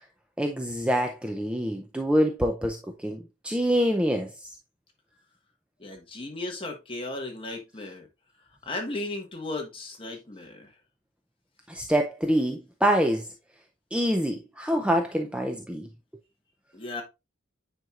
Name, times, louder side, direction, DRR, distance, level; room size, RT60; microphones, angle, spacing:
voice 1, 0.4-3.2 3.4-4.5 11.7-13.3 13.9-15.9, equal, 5° right, 0.5 m, -26 dB
voice 2, 5.8-8.1 8.6-10.7 16.7-17.0, left 2 dB, 25° left, 1.4 m, -35 dB
9.0 x 4.4 x 2.4 m
head